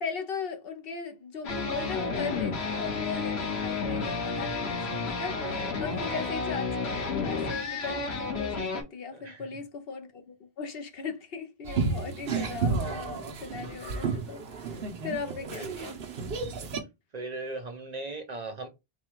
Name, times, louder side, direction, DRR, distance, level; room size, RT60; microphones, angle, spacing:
voice 1, 0.0-16.0, left 5 dB, 65° left, 1.0 m, -38 dB
sound 1, 1.4-8.8, left 4 dB, 90° left, 1.4 m, -31 dB
voice 2, 9.1-9.4 15.5-15.8 17.1-18.7, right 2 dB, 50° right, 0.6 m, -38 dB
sound 2, 11.7-16.8, right 4 dB, 65° right, 1.0 m, -32 dB
4.3 x 2.3 x 4.5 m
omnidirectional pair, 1.1 m